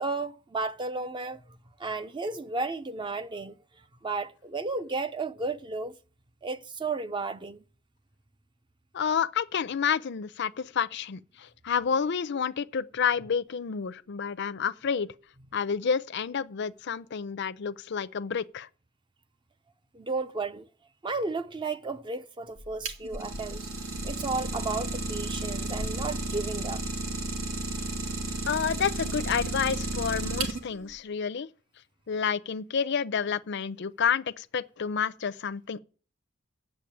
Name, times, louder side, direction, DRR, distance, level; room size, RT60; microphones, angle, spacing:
voice 1, 0.0-1.4 1.8-3.5 4.0-5.9 6.4-7.6 19.9-20.7 21.0-23.7 24.0-26.8, right 3 dB, 25° right, 0.5 m, -33 dB
voice 2, 8.9-15.1 15.5-18.7 28.4-31.5 32.1-35.8, left 6 dB, 60° left, 0.5 m, -29 dB
Idling, 22.6-30.9, right 2 dB, 80° right, 1.9 m, -33 dB
8.6 x 7.3 x 8.7 m
head